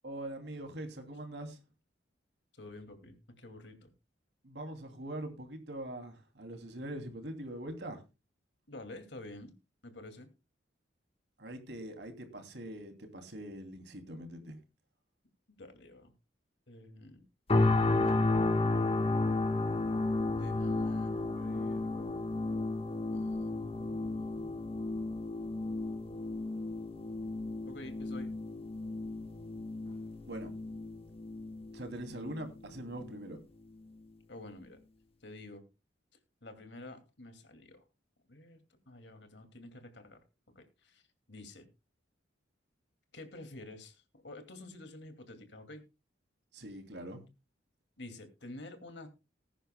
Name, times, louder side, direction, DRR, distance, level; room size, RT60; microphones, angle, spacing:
voice 1, 0.0-1.6 4.4-8.0 11.4-14.6 30.3-30.5 31.7-33.4 46.5-47.2, right 1 dB, 65° right, 2.7 m, -43 dB
voice 2, 2.5-3.9 8.7-9.5 9.8-10.3 15.6-16.1 16.7-17.2 20.3-22.3 23.1-24.6 27.7-28.3 34.3-34.8 35.2-35.6 36.4-37.8 38.3-38.6 38.9-40.2 40.6-41.0 41.3-41.7 43.1-45.8 48.0-49.1, left 1 dB, 70° left, 2.3 m, -49 dB
sound 1, 17.5-32.5 33.0-33.2, left 2 dB, 30° left, 1.3 m, -32 dB
20.0 x 10.5 x 2.2 m
head